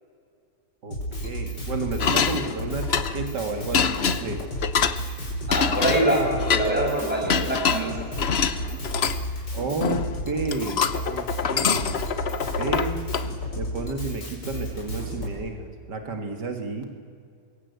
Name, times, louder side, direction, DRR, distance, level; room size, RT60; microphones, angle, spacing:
Drum kit, 0.9-15.3, equal, 85° left, 5.8 m, -32 dB
voice 1, 1.2-4.4 9.5-10.8 11.1-12.0 12.6-13.0 13.6-16.8, right 3 dB, 80° right, 5 dB, 2.5 m, -31 dB
sound 1, 2.0-3.3 3.7-5.0 5.5-6.7 7.3-9.2 9.8-10.2 10.4-13.3, left 7 dB, 45° left, 1.0 m, -25 dB
voice 2, 5.5-7.9, right 1 dB, 5° right, -2 dB, 8.0 m, -24 dB
26.0 x 22.5 x 8.2 m, 2.2 s
omnidirectional pair, 1.8 m